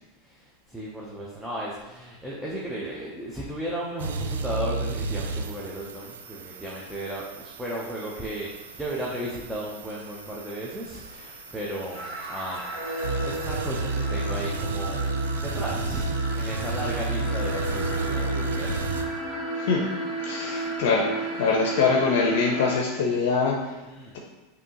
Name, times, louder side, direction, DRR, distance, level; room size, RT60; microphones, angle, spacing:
voice 1, 0.2-8.5 8.8-15.1 15.4-19.0 20.4-20.7 23.8-24.1, right 1 dB, 5° right, -5 dB, 0.8 m, -35 dB
sound 1, 4.0-19.0, right 3 dB, 80° right, 0.3 m, -32 dB
sound 2, 11.9-22.8, right 1 dB, 45° right, 1.2 m, -33 dB
voice 2, 20.2-23.8, left 4 dB, 70° left, 0 dB, 0.6 m, -24 dB
5.1 x 2.8 x 2.9 m, 1.1 s
hypercardioid pair, 100°, 0 cm